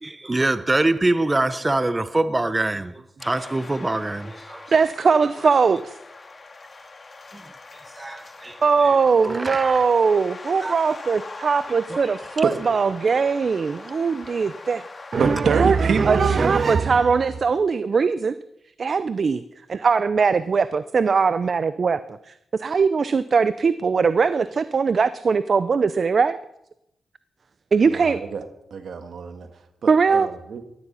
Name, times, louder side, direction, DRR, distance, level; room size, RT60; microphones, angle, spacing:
voice 1, 0.0-4.7 7.3-7.4 8.0-8.9 9.2-9.8 10.6-10.7, right 2 dB, 25° right, 0.8 m, -24 dB
sound 1, 3.2-15.4, left 3 dB, 40° left, 2.0 m, -42 dB
voice 2, 4.7-6.0 8.6-14.9 15.1-18.3 18.8-19.4 19.7-26.4 27.7-28.2 29.9-30.3, right 5 dB, 55° right, 0.6 m, -20 dB
voice 3, 15.2-16.4 27.9-28.4 28.7-29.5 29.8-30.6, right 5 dB, 70° right, 1.8 m, -26 dB
15.5 x 12.5 x 5.6 m
cardioid pair, 60°, 0 cm